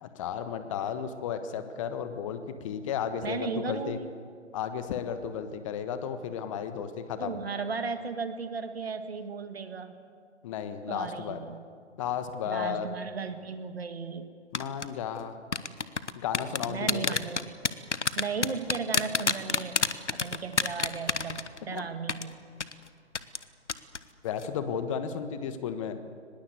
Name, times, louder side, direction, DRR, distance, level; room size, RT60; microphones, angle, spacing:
voice 1, 0.0-4.0 4.5-7.4 10.4-11.4 12.0-12.9 14.5-15.4 16.1-17.2 21.7-21.8 24.2-26.0, left 8 dB, 25° left, 10 dB, 1.4 m, -34 dB
voice 2, 3.2-4.1 7.2-9.9 10.9-11.6 12.4-14.3 16.7-17.6 18.2-19.8 20.1-22.4, right 5 dB, 55° right, 9 dB, 2.1 m, -35 dB
sound 1, 14.5-14.9 15.5-21.8 22.1-22.2 22.6-22.7 23.1-23.4 23.7-24.0 24.3-24.5, left 4 dB, 75° left, 1.3 m, -27 dB
24.0 x 20.5 x 8.2 m, 2.2 s
figure-of-eight pair, 130°, 36 cm